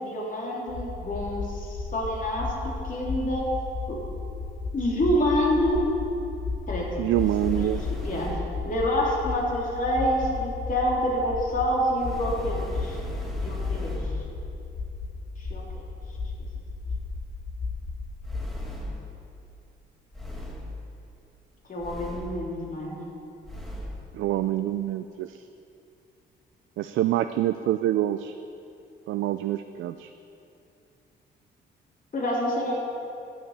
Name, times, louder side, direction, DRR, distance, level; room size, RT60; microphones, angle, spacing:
voice 1, 0.0-2.5 2.8-3.4 3.9-4.0 4.7-5.8 6.7-6.9 7.5-7.6 8.0-8.4 8.7-13.0 13.4-14.0 15.4-15.6 21.7-23.0 32.1-32.8, equal, 40° left, -3 dB, 3.5 m, -27 dB
sound 1, 0.7-18.5, left 3 dB, 75° left, 2.2 m, -35 dB
voice 2, 7.0-7.8 24.1-25.4 26.8-28.3 29.1-30.1, right 13 dB, 75° right, 10 dB, 0.5 m, -26 dB
sound 2, 7.1-8.6 12.0-14.3 18.2-19.1 20.1-20.8 21.8-22.5 23.4-24.0, left 2 dB, ahead, 2.0 m, -35 dB
12.0 x 7.3 x 8.2 m, 2.6 s
cardioid pair, 90°, 20 cm